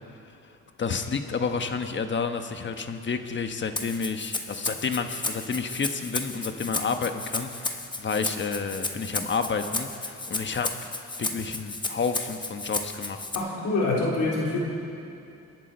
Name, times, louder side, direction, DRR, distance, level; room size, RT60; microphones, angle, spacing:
voice 1, 0.8-10.7 11.2-13.2, left 5 dB, 40° left, 7 dB, 1.3 m, -30 dB
Rattle (instrument), 3.8-13.4, left 2 dB, 15° left, 1.2 m, -33 dB
voice 2, 13.3-14.6, left 2 dB, 85° left, -4 dB, 3.7 m, -25 dB
28.0 x 11.0 x 4.5 m, 2.7 s
cardioid pair, 90°, 30 cm